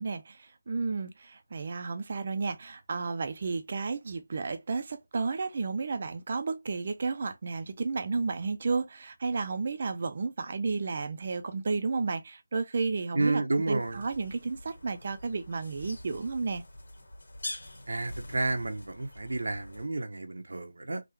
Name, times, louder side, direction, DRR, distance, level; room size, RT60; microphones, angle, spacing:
voice 1, 0.0-16.6, right 4 dB, 25° right, 0.3 m, -32 dB
voice 2, 13.1-14.0 17.9-21.0, right 2 dB, 70° right, 0.7 m, -31 dB
sound 1, 13.8-19.9, left 1 dB, 55° left, 1.7 m, -45 dB
3.6 x 2.1 x 2.9 m
figure-of-eight pair, 180°, 0 cm